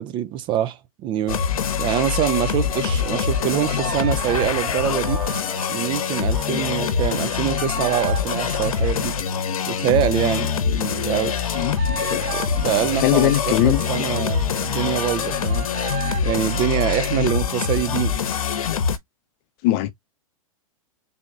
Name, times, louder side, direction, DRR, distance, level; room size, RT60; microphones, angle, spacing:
voice 1, 0.0-1.4 1.8-5.2 5.7-9.2 9.7-11.4 11.9-15.7 16.2-18.2, right 11 dB, 25° right, 0.4 m, -25 dB
sound 1, 1.3-19.0, left 7 dB, 70° left, 0.9 m, -24 dB
sound 2, 3.0-9.2 11.0-17.2, right 7 dB, 50° right, 1.6 m, -36 dB
voice 2, 11.6-12.2 13.0-13.8 19.6-19.9, left 15 dB, 40° left, 0.6 m, -20 dB
4.1 x 2.4 x 4.6 m
hypercardioid pair, 115°, 19 cm